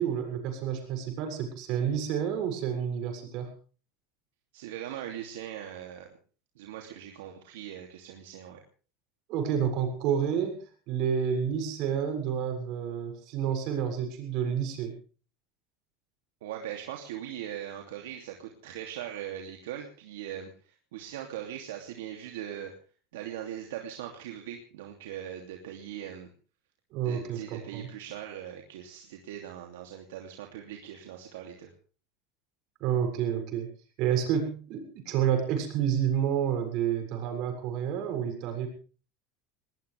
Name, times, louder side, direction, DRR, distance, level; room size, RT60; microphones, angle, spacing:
voice 1, 0.0-3.5 9.3-15.0 26.9-27.9 32.8-33.7 34.0-38.7, right 8 dB, 60° right, 5 dB, 7.2 m, -29 dB
voice 2, 4.5-6.1 6.6-8.6 16.4-22.7 23.1-26.3 27.0-31.7, right 10 dB, 85° right, 2 dB, 2.9 m, -40 dB
20.5 x 19.5 x 3.5 m, 0.39 s
supercardioid pair, 110°, 0 cm